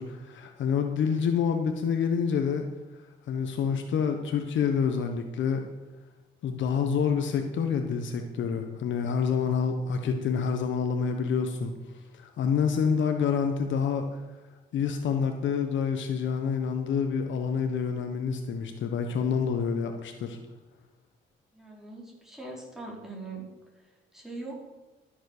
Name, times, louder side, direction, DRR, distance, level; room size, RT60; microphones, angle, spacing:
voice 1, 0.0-2.7 3.3-5.7 6.4-11.7 12.1-14.0 14.7-20.4, left 6 dB, 70° left, 5 dB, 1.2 m, -27 dB
voice 2, 21.5-23.5 24.1-24.7, right 3 dB, ahead, -3 dB, 4.9 m, -41 dB
13.5 x 7.4 x 6.7 m, 1.2 s
cardioid pair, 90°, 20 cm